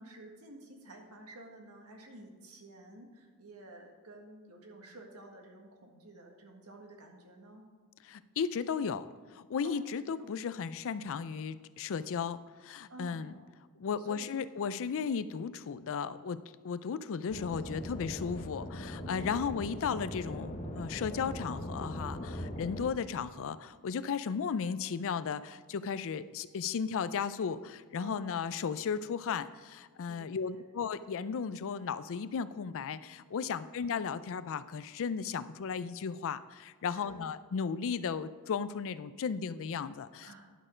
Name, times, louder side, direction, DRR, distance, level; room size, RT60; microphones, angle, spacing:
voice 1, 0.0-7.6 9.6-9.9 10.2-10.5 12.9-13.5 14.0-14.4 19.0-19.6 28.0-28.5 30.1-30.6 33.5-33.7 36.8-37.3 40.2-40.4, right 1 dB, 75° right, 1 dB, 1.7 m, -51 dB
voice 2, 8.0-9.0 9.3-13.3 13.8-16.4 16.6-40.4, left 6 dB, 65° left, 14 dB, 0.4 m, -35 dB
sound 1, 17.3-22.9, left 1 dB, 30° left, 1.0 m, -40 dB
11.0 x 6.5 x 5.1 m, 1.5 s
head